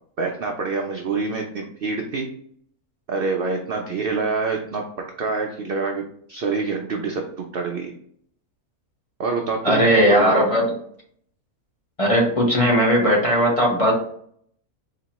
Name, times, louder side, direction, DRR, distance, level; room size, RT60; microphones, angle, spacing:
voice 1, 0.2-2.3 3.1-7.3 7.5-7.9 9.2-9.8 10.1-10.5, right 4 dB, 70° right, 2 dB, 0.5 m, -26 dB
voice 2, 9.6-10.6 12.0-13.9, equal, 30° left, -3 dB, 0.8 m, -18 dB
4.1 x 2.9 x 2.9 m, 0.63 s
omnidirectional pair, 1.5 m